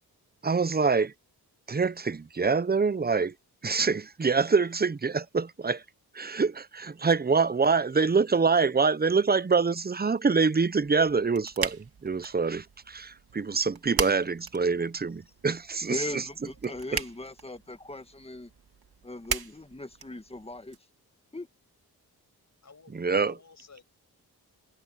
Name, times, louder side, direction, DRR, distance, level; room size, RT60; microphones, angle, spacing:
voice 1, 0.4-1.1 1.7-3.3 3.6-5.8 6.1-16.0 16.6-16.7 23.0-23.3, right 4 dB, 25° right, 0.8 m, -25 dB
sound 1, 10.8-20.8, right 7 dB, 65° right, 2.7 m, -39 dB
voice 2, 15.9-18.5 19.0-20.8 21.3-21.5, left 2 dB, 15° left, 1.6 m, -39 dB
voice 3, 22.6-22.9 23.2-23.8, left 4 dB, 45° left, 6.1 m, -55 dB
cardioid pair, 65°, 39 cm